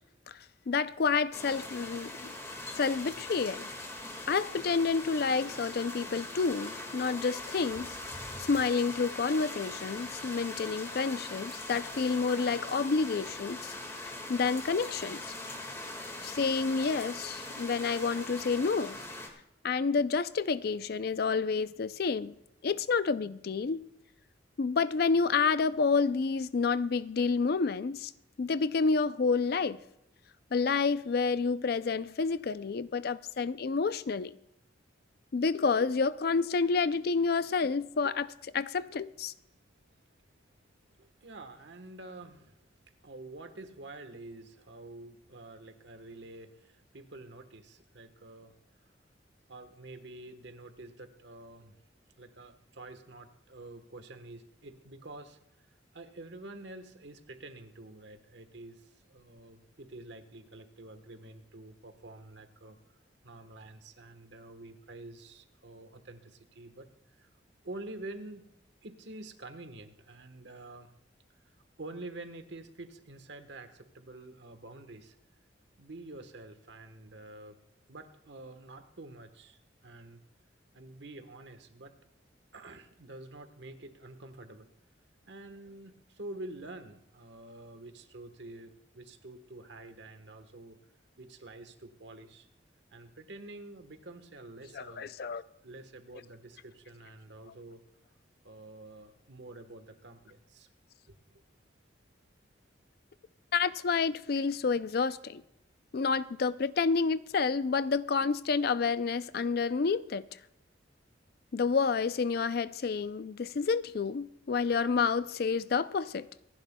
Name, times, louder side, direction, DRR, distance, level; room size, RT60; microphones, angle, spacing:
voice 1, 0.7-2.3 2.8-3.7 4.3-8.0 8.4-15.2 16.2-19.0 19.6-22.3 22.6-23.8 24.6-28.1 28.4-29.8 30.5-34.3 35.3-39.3 94.8-95.4 103.5-105.4 105.9-110.2 111.5-116.3, left 5 dB, 55° left, 0.4 m, -29 dB
sound 1, 1.3-19.3, left 2 dB, 15° left, 1.8 m, -41 dB
voice 2, 41.0-42.6 43.0-48.5 49.5-51.8 52.2-55.4 55.9-62.8 63.2-67.3 67.6-68.4 68.8-70.9 71.8-75.1 75.8-77.6 77.9-80.2 80.7-81.9 82.5-84.7 85.3-90.8 91.2-92.5 92.9-95.1 95.6-97.8 98.4-100.7, right 2 dB, 65° right, 1.2 m, -48 dB
26.0 x 11.0 x 2.2 m
head